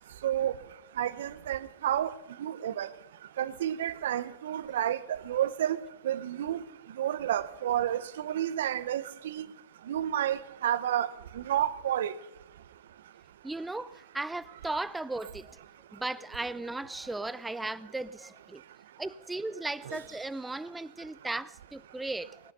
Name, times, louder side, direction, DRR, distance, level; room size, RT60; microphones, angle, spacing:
voice 1, 0.2-0.5 1.0-2.1 2.4-2.9 3.4-5.8 6.0-6.6 7.0-9.5 9.9-11.1 11.3-12.1 19.9-20.0, right 11 dB, 75° right, 16 dB, 0.8 m, -30 dB
voice 2, 13.4-15.5 15.9-18.6 19.0-22.4, right 2 dB, 10° right, 18 dB, 0.6 m, -36 dB
20.0 x 10.0 x 5.4 m, 0.89 s
hypercardioid pair, 100°, 0 cm